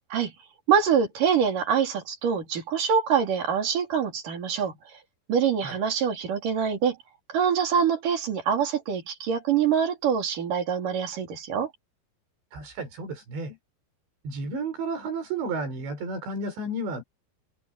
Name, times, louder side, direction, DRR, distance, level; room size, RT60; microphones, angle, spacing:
voice 1, 0.7-4.8 5.3-7.0 7.3-11.7, right 7 dB, 50° right, 4.9 m, -25 dB
voice 2, 12.5-13.6 14.2-17.0, right 2 dB, 70° right, 7.9 m, -32 dB
omnidirectional pair, 5.2 m